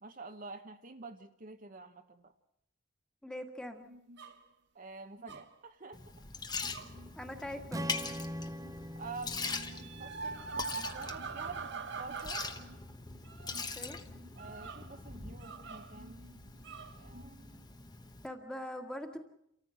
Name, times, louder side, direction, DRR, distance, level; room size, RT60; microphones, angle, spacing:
voice 1, 0.0-2.3 4.7-6.0 8.9-12.4 14.4-16.2 17.0-17.7, right 3 dB, 45° right, 6 dB, 1.0 m, -48 dB
voice 2, 3.2-3.9 7.2-8.1 13.5-14.0 18.2-19.2, left 1 dB, 5° left, 4 dB, 1.7 m, -43 dB
sound 1, 3.9-4.4 5.2-5.5 6.6-8.2 8.6-8.9 9.3-17.4, right 5 dB, 60° right, 1.4 m, -45 dB
Liquid, 5.9-18.3, left 4 dB, 20° left, 1.1 m, -43 dB
Strum, 7.7-12.0, equal, 20° right, 0.9 m, -44 dB
29.0 x 14.0 x 7.7 m, 0.77 s
head